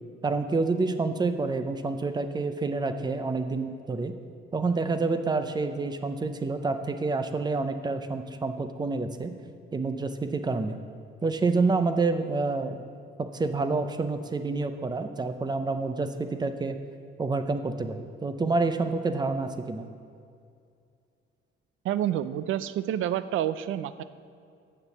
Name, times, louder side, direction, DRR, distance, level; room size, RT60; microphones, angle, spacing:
voice 1, 0.2-4.1 4.5-9.3 9.7-10.8 11.2-12.8 13.2-16.8 17.2-19.9, right 3 dB, 20° right, 9 dB, 0.5 m, -28 dB
voice 2, 21.8-24.0, right 11 dB, 70° right, 14 dB, 0.4 m, -28 dB
7.3 x 6.8 x 7.1 m, 2.4 s
cardioid pair, 125°, 21 cm